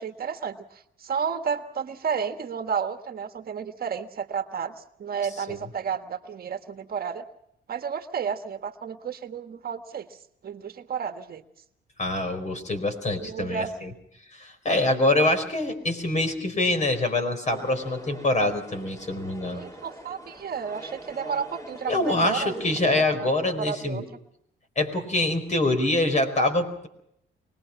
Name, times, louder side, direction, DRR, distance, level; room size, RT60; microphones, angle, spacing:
voice 1, 0.0-7.2 7.7-10.1 10.4-11.4 13.2-13.9 19.5-23.3 23.6-24.0, right 6 dB, 50° right, 7 dB, 1.5 m, -32 dB
voice 2, 12.0-13.9 14.3-19.6 21.9-24.0 24.8-26.9, left 2 dB, 35° left, 8 dB, 4.6 m, -25 dB
sound 1, 17.5-23.0, right 1 dB, 15° left, 3.4 m, -43 dB
24.5 x 20.0 x 6.0 m, 0.74 s
cardioid pair, 90°, 20 cm